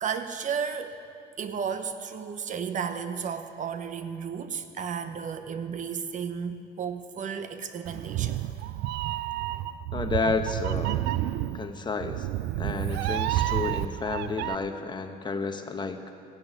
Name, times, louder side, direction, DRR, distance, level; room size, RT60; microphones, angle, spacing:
voice 1, 0.0-1.0 1.4-8.4, right 6 dB, 50° right, 9 dB, 1.0 m, -33 dB
Meow, 7.9-14.6, right 14 dB, 90° right, 0.4 m, -30 dB
voice 2, 9.9-11.0 11.5-12.3 12.6-16.1, left 4 dB, 25° left, 6 dB, 1.1 m, -31 dB
16.0 x 8.7 x 9.9 m, 2.4 s
cardioid pair, 110°, 17 cm